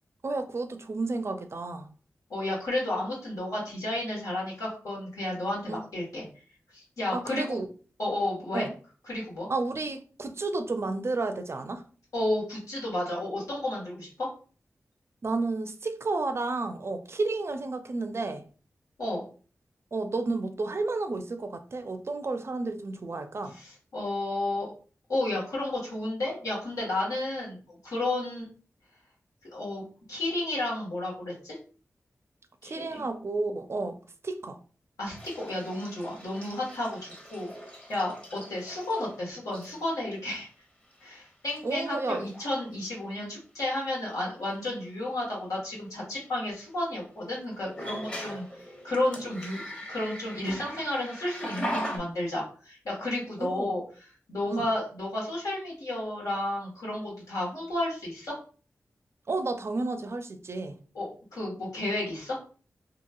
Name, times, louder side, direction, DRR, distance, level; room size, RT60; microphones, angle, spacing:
voice 1, 0.2-1.9 5.7-5.8 7.1-7.7 8.5-8.7 9.5-11.8 15.2-18.4 19.9-23.6 32.6-34.0 34.2-34.6 41.6-42.3 53.4-53.7 54.5-54.7 59.3-60.8, right 3 dB, 50° right, 0.4 m, -31 dB
voice 2, 2.3-6.2 6.7-7.6 8.0-8.7 9.1-9.5 12.1-14.3 19.0-19.2 23.5-24.7 25.1-27.6 27.8-28.5 29.4-31.6 32.6-33.0 35.0-37.5 37.9-40.5 41.0-48.4 48.8-53.8 54.3-58.3 60.9-62.4, left 1 dB, 90° left, 1.3 m, -32 dB
sound 1, 35.0-39.2 39.5-39.9 40.9-41.0 41.5-41.9 42.2-42.5 44.6-44.7 47.7-52.0, equal, 20° left, 0.8 m, -40 dB
2.9 x 2.4 x 2.3 m
cardioid pair, 40°, 6 cm